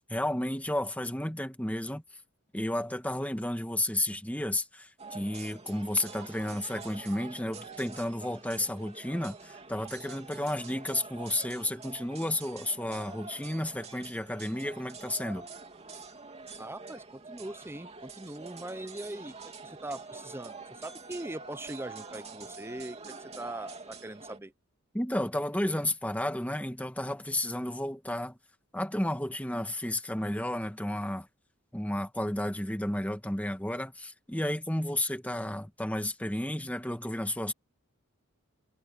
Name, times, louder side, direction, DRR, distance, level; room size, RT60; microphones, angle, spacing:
voice 1, 0.1-2.0 2.5-15.4 24.9-28.4 28.7-31.3 31.7-37.5, left 1 dB, 5° left, 1.7 m, -32 dB
sound 1, 5.0-24.4, right 4 dB, 30° right, 3.0 m, -46 dB
voice 2, 16.6-19.3 19.6-24.5, right 1 dB, 10° right, 0.7 m, -41 dB
head